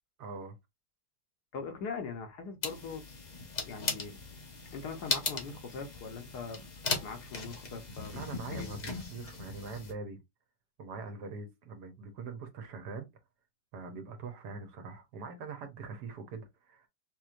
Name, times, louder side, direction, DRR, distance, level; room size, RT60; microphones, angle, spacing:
voice 1, 0.2-0.6 8.1-10.2 10.8-13.1 13.7-16.9, right 4 dB, 65° right, 1.4 m, -43 dB
voice 2, 1.5-3.0 3.6-4.2 4.7-6.7 7.0-8.8, left 5 dB, 65° left, 1.3 m, -41 dB
sound 1, 2.6-9.9, left 4 dB, 80° left, 0.4 m, -38 dB
4.6 x 3.1 x 2.4 m
omnidirectional pair, 1.9 m